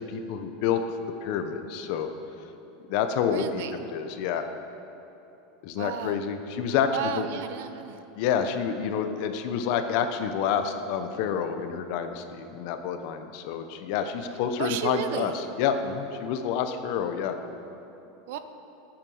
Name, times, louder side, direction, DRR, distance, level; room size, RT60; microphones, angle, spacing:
voice 1, 0.1-0.8 1.2-2.1 2.9-3.6 3.9-4.5 5.6-7.2 8.2-17.3, left 7 dB, 45° left, 7 dB, 0.9 m, -28 dB
voice 2, 3.3-3.8 5.8-6.2 6.9-8.0 14.6-15.3 18.3-18.4, right 9 dB, 60° right, 10 dB, 0.8 m, -33 dB
18.5 x 8.9 x 5.6 m, 3.0 s
supercardioid pair, 175°, 0 cm